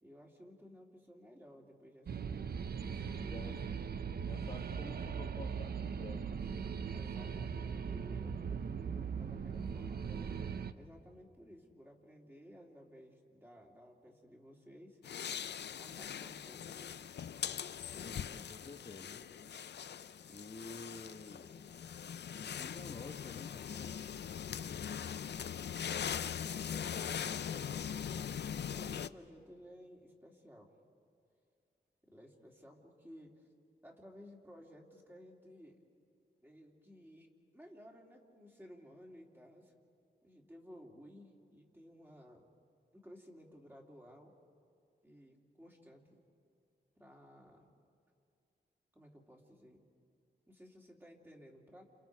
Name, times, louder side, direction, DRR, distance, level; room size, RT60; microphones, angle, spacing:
voice 1, 0.0-2.5 2.7-3.4 6.9-10.3 10.7-15.0 15.8-17.1 26.2-26.8 28.7-30.7 32.1-33.4 33.8-35.8 36.4-39.7 40.2-42.5 42.9-44.3 45.0-46.2 47.0-47.7 48.9-49.9 50.5-51.8, equal, 10° right, -1 dB, 2.8 m, -56 dB
sound 1, 2.1-10.7, right 6 dB, 55° right, 0.7 m, -39 dB
voice 2, 3.2-3.6 4.3-6.7 18.0-19.2 20.3-21.5 22.3-24.0 26.2-28.4, left 3 dB, 35° left, 2 dB, 1.2 m, -51 dB
sound 2, 15.0-29.1, left 8 dB, 65° left, 0.5 m, -41 dB
30.0 x 28.5 x 4.7 m, 2.3 s
wide cardioid pair, 120°, 19 cm